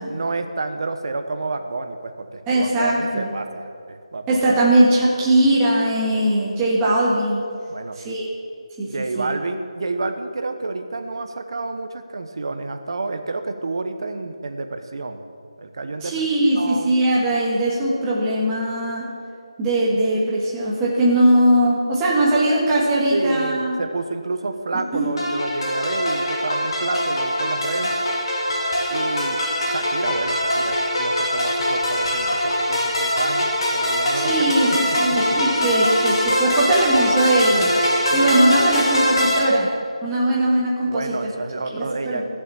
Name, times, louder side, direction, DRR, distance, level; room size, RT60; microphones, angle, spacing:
voice 1, 0.1-4.5 7.7-8.1 8.9-15.2 15.6-16.3 16.6-17.0 23.1-27.9 28.9-29.4 29.7-34.8 35.4-35.5 38.1-38.4 40.8-42.2, right 3 dB, 50° right, 7 dB, 1.1 m, -29 dB
voice 2, 2.5-3.3 4.3-7.4 8.0-8.3 8.8-8.9 9.1-9.3 16.0-19.1 19.6-23.7 24.7-25.1 34.1-37.7 38.1-39.7 40.0-41.1 41.7-42.2, right 1 dB, 10° right, -6 dB, 1.6 m, -20 dB
sound 1, 25.2-39.4, left 1 dB, 50° left, 2.9 m, -22 dB
14.5 x 7.0 x 7.0 m, 2.5 s
figure-of-eight pair, 175°, 3 cm